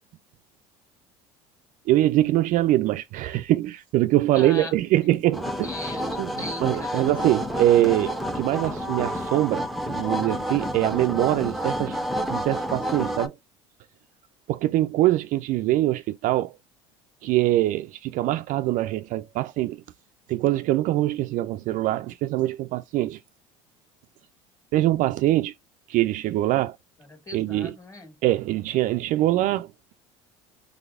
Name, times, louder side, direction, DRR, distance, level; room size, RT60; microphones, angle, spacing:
voice 1, 1.9-5.7 6.2-6.3 6.6-12.0 12.3-13.3 14.5-16.5 17.2-19.8 20.3-23.2 24.7-25.5 25.9-26.8 27.3-27.7 28.2-29.9, right 15 dB, 55° right, 0.4 m, -23 dB
voice 2, 4.3-4.7 5.0-5.2 5.6-7.1 27.0-28.2, left 2 dB, 20° left, 1.7 m, -39 dB
sound 1, 5.3-13.3, equal, ahead, 0.6 m, -29 dB
4.0 x 3.3 x 2.4 m
hypercardioid pair, 75°, 16 cm